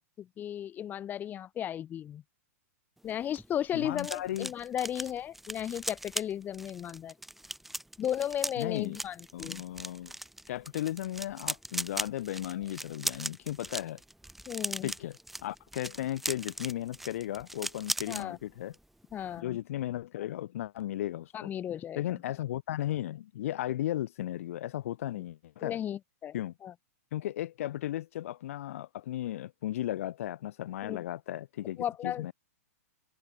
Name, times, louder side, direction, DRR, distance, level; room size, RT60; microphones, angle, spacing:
voice 1, 0.2-2.2 3.0-7.1 8.0-9.6 14.5-14.9 18.1-18.4 19.1-19.6 21.3-22.2 25.6-26.3 26.6-26.7 30.8-31.0 31.8-32.3, left 10 dB, 20° left, 3.1 m, -35 dB
sound 1, 3.0-18.2 18.6-18.8 19.1-19.4, right 1 dB, ahead, 1.2 m, -39 dB
voice 2, 3.7-4.5 8.6-9.0 9.3-10.1 10.5-14.0 14.8-18.7 19.4-21.5 22.0-25.8 26.3-26.5 27.1-32.3, left 13 dB, 60° left, 3.0 m, -35 dB
open air
hypercardioid pair, 140°, 8 cm